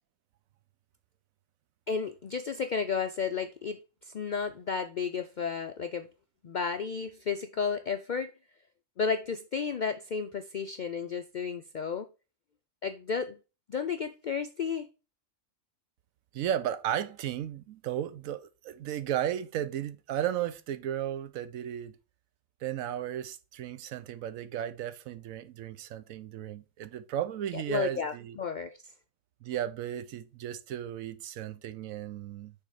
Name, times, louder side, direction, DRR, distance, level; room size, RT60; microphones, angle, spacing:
voice 1, 1.9-6.1 6.4-8.3 9.0-12.1 12.8-13.4 13.7-14.9 27.5-28.9, left 6 dB, 80° left, 0.4 m, -33 dB
voice 2, 16.3-21.9 22.6-28.4 29.4-32.5, right 11 dB, 80° right, 1.1 m, -34 dB
6.6 x 3.8 x 4.7 m
omnidirectional pair, 1.4 m